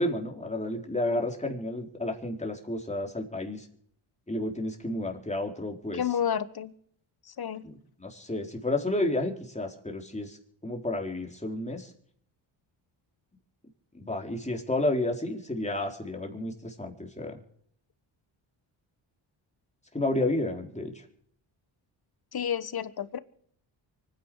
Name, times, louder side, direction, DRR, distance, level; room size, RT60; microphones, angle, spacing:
voice 1, 0.0-3.7 4.3-6.0 8.0-10.4 10.6-11.9 13.9-17.4 19.9-20.9, left 1 dB, 15° left, 2 dB, 4.1 m, -31 dB
voice 2, 5.9-6.7 7.3-7.6 22.3-23.2, left 8 dB, 50° left, 15 dB, 1.3 m, -30 dB
25.0 x 10.0 x 4.7 m, 0.63 s
cardioid pair, 65°, 49 cm